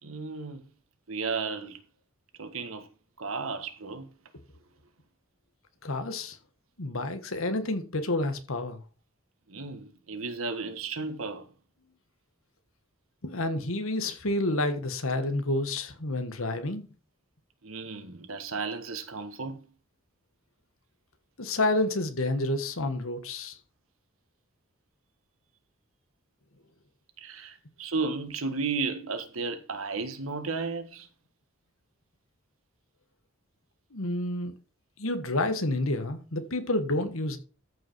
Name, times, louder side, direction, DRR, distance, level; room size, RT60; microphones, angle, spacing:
voice 1, 0.0-0.7 1.1-1.8 2.4-2.9 3.2-4.1 9.5-11.4 17.6-19.6 27.2-31.1, right 4 dB, 75° right, 1.6 m, -34 dB
voice 2, 5.8-6.4 6.8-8.8 13.2-16.9 21.4-23.6 33.9-34.5 35.0-37.4, left 2 dB, 75° left, 1.5 m, -29 dB
14.0 x 5.6 x 4.6 m
head